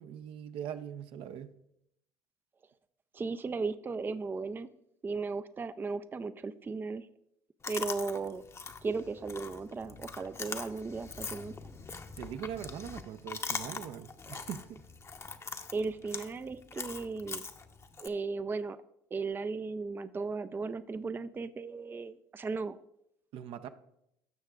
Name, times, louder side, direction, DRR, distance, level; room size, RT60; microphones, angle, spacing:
voice 1, 0.0-1.5 11.9-14.8 23.3-23.7, right 9 dB, 60° right, 9 dB, 0.6 m, -42 dB
voice 2, 3.1-4.7 5.0-7.1 7.7-8.4 8.8-11.5 15.7-17.4 18.0-18.8 19.1-22.8, right 4 dB, 20° right, 13 dB, 0.4 m, -36 dB
Chewing mastication, 7.6-18.1, left 4 dB, 25° left, 0.8 m, -42 dB
16.5 x 6.4 x 2.4 m, 0.79 s
hypercardioid pair, 70°, 11 cm